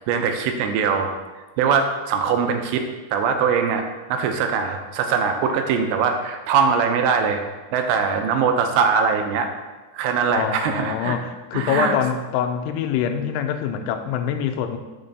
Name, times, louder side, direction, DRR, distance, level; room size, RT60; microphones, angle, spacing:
voice 1, 0.1-1.1 1.6-2.8 3.1-7.4 7.7-9.5 9.9-11.2 11.5-12.0, right 6 dB, 80° right, 5 dB, 2.7 m, -21 dB
voice 2, 10.3-14.8, left 8 dB, 85° left, 8 dB, 3.0 m, -25 dB
6.8 x 5.6 x 5.2 m, 1.2 s
omnidirectional pair, 5.4 m